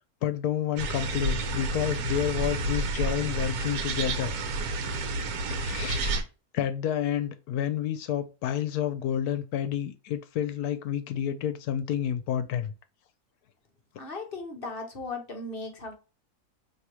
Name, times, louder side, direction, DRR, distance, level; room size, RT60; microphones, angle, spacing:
voice 1, 0.2-4.3 5.5-6.2 6.5-12.7, left 10 dB, 75° left, 1.1 m, -29 dB
sound 1, 0.8-6.2, right 2 dB, 70° right, 1.2 m, -30 dB
voice 2, 14.0-16.0, left 3 dB, 45° left, 0.8 m, -37 dB
4.8 x 2.9 x 2.8 m
omnidirectional pair, 1.7 m